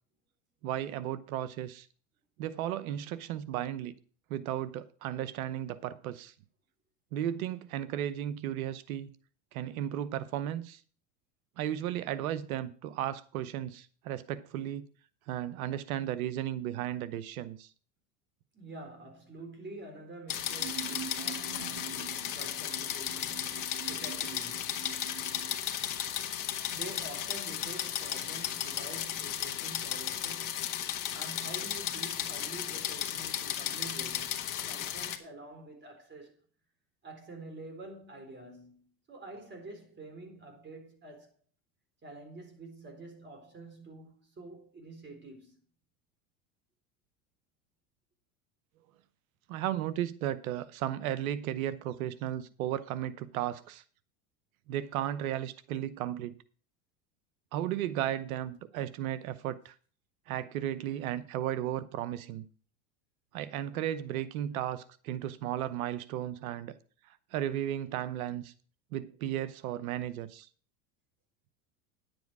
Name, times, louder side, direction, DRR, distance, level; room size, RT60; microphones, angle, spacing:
voice 1, 0.6-1.9 2.4-4.0 4.3-6.3 7.1-9.1 9.5-10.8 11.6-14.9 15.3-17.7 49.5-53.8 54.7-56.4 57.5-59.7 60.3-62.5 63.3-66.7 67.3-68.5 68.9-70.5, right 11 dB, 75° right, 0.9 m, -35 dB
voice 2, 18.5-24.7 25.7-26.0 26.7-36.4 37.0-41.4 42.0-45.6, right 2 dB, 25° right, 4.0 m, -48 dB
sound 1, 20.3-35.2, left 11 dB, 45° left, 1.6 m, -35 dB
sound 2, 20.4-25.6, right 12 dB, 55° right, 1.5 m, -45 dB
10.5 x 7.9 x 4.7 m
hypercardioid pair, 95°, 42 cm